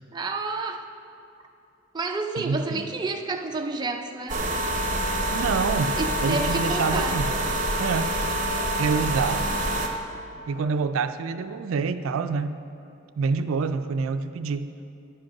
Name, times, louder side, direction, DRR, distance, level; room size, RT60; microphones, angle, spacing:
voice 1, 0.1-0.9 1.9-4.4 6.0-7.2, right 3 dB, 20° right, 4 dB, 0.4 m, -30 dB
voice 2, 2.4-2.8 5.3-7.3 7.8-8.1 8.8-9.5 10.5-12.5 13.2-14.7, right 5 dB, 90° right, 11 dB, 0.4 m, -27 dB
sound 1, 4.3-9.9, right 1 dB, 40° right, 0.8 m, -26 dB
9.9 x 5.2 x 5.8 m, 2.7 s
head